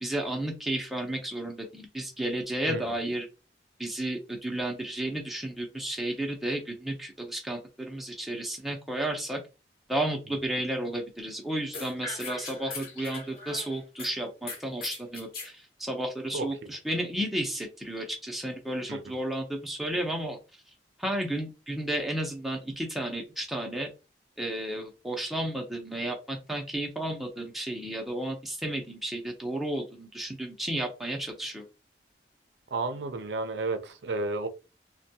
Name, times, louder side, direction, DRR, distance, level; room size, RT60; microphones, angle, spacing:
voice 1, 0.0-3.3 3.8-9.4 9.9-20.4 21.0-23.9 24.4-31.6, right 1 dB, ahead, 0.6 m, -32 dB
sound 1, 11.7-14.1 14.5-15.5, left 3 dB, 50° left, 1.1 m, -39 dB
voice 2, 32.7-34.5, right 3 dB, 85° right, 0.5 m, -31 dB
3.4 x 2.2 x 2.7 m
head